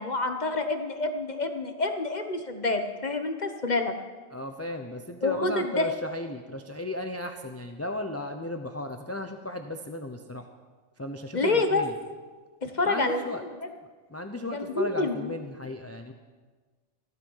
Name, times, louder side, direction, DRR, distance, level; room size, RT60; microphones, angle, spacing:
voice 1, 0.0-3.9 5.2-5.9 11.3-11.8 12.6-13.5 14.4-15.3, left 3 dB, 35° left, 6 dB, 1.1 m, -28 dB
voice 2, 4.3-10.4 11.0-11.9 12.9-13.4 14.1-16.1, left 1 dB, 15° left, 5 dB, 0.5 m, -35 dB
15.5 x 12.5 x 5.6 m, 1.4 s
omnidirectional pair, 1.4 m